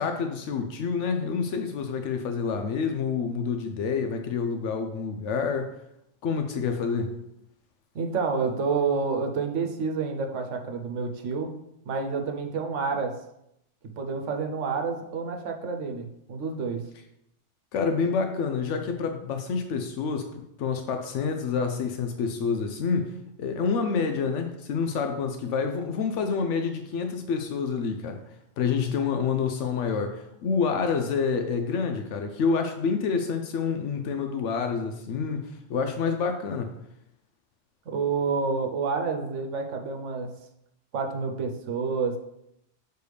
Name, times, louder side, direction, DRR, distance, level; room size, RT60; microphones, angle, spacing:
voice 1, 0.0-5.7 6.2-7.2 17.7-23.1 23.4-28.2 28.6-36.7, left 5 dB, 80° left, 6 dB, 0.9 m, -28 dB
voice 2, 7.9-11.6 11.9-13.2 14.0-16.8 37.9-40.3 40.9-42.2, right 5 dB, 85° right, 4 dB, 1.1 m, -29 dB
6.5 x 4.5 x 3.3 m, 0.80 s
omnidirectional pair, 1.2 m